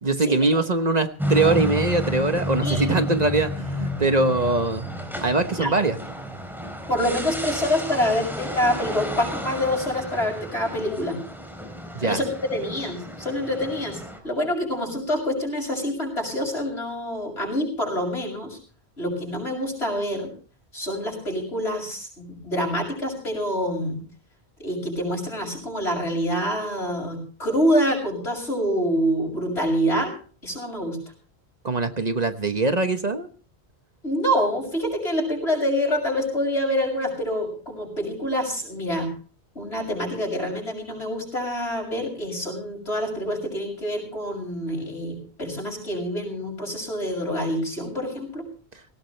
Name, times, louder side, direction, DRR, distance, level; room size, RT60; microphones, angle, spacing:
voice 1, 0.0-4.9 5.2-6.0 11.9-12.2 31.6-33.3, right 3 dB, 40° right, 9 dB, 1.1 m, -22 dB
sound 1, 1.2-14.2, left 1 dB, ahead, 3.6 m, -31 dB
voice 2, 2.6-3.0 5.5-5.7 6.9-11.2 12.0-18.6 19.0-20.3 20.7-24.0 24.6-30.1 30.4-31.0 34.0-39.1 39.5-48.5, equal, 80° left, 0 dB, 6.9 m, -26 dB
18.0 x 17.5 x 3.3 m, 0.41 s
omnidirectional pair, 1.1 m